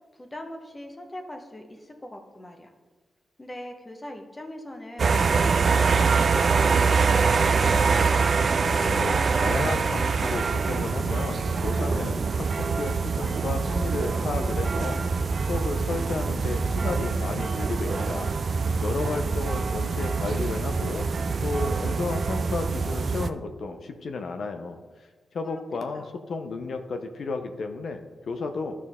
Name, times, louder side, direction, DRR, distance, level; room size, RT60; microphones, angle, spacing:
voice 1, 0.1-2.7 3.4-5.1 5.4-8.3 25.4-25.6 25.9-26.1, left 1 dB, 25° left, 4 dB, 1.3 m, -41 dB
sound 1, 5.0-23.3, right 5 dB, 55° right, 0.4 m, -24 dB
voice 2, 8.6-15.2 15.5-21.1 21.4-24.8 25.3-28.8, left 4 dB, 70° left, 6 dB, 0.8 m, -33 dB
11.0 x 6.2 x 3.7 m, 1.3 s
cardioid pair, 70°, 0 cm